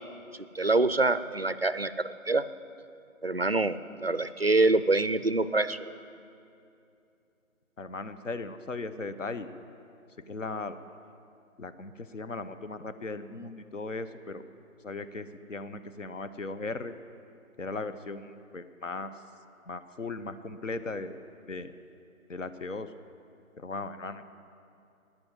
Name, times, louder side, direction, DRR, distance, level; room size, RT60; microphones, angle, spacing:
voice 1, 0.5-2.4 3.2-5.9, right 2 dB, 45° right, 14 dB, 0.4 m, -26 dB
voice 2, 7.8-9.5 10.2-10.8 11.6-14.5 14.8-16.9 17.6-19.2 19.7-21.2 21.5-21.7 22.3-22.9 23.6-24.2, left 3 dB, 60° left, 11 dB, 0.9 m, -37 dB
12.0 x 10.0 x 9.3 m, 2.6 s
figure-of-eight pair, 170°, 42 cm